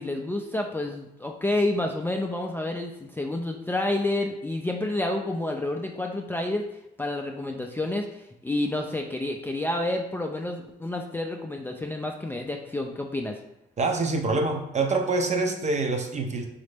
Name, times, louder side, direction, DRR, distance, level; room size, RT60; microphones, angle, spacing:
voice 1, 0.0-6.6 7.0-8.1 8.4-13.4, left 1 dB, 10° left, 2 dB, 0.3 m, -29 dB
voice 2, 13.8-16.5, right 3 dB, 35° right, 5 dB, 0.6 m, -25 dB
3.9 x 3.1 x 3.4 m, 0.88 s
cardioid pair, 90°, 20 cm